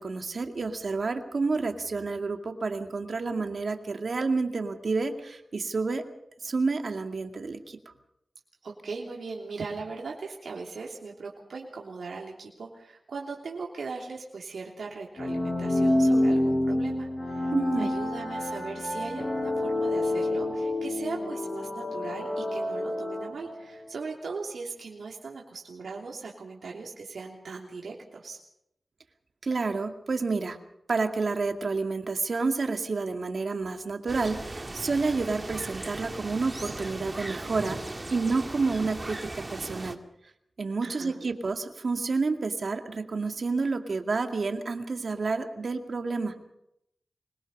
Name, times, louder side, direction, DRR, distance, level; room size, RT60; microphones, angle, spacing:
voice 1, 0.0-6.0 6.4-7.9 17.5-17.9 29.4-30.6 30.9-40.0 40.6-46.5, right 4 dB, 65° right, 5 dB, 2.2 m, -29 dB
voice 2, 8.6-28.4 40.8-41.3, right 4 dB, 90° right, -2 dB, 3.1 m, -39 dB
sound 1, 15.2-23.8, left 1 dB, 40° left, 6.2 m, -28 dB
sound 2, 34.1-40.0, right 2 dB, 30° right, 2.0 m, -38 dB
24.5 x 21.0 x 5.5 m, 0.79 s
wide cardioid pair, 65°, 0 cm